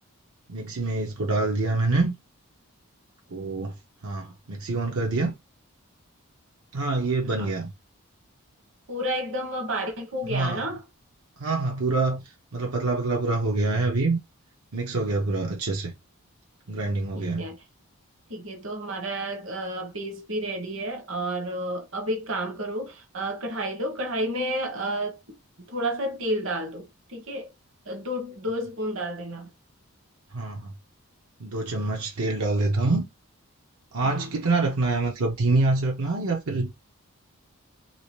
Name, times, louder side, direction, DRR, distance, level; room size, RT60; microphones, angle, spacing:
voice 1, 0.5-2.1 3.3-3.7 4.0-5.3 6.7-7.7 10.3-10.7 11.4-12.2 12.5-14.2 14.7-15.9 16.7-17.5 30.3-30.7 31.4-33.1 33.9-36.7, right 3 dB, 85° right, 0.8 m, -26 dB
voice 2, 8.9-10.8 17.1-17.6 18.3-25.2 25.7-27.5 27.8-29.5 34.0-34.3, right 1 dB, 60° right, 1.0 m, -31 dB
3.2 x 2.8 x 3.1 m
head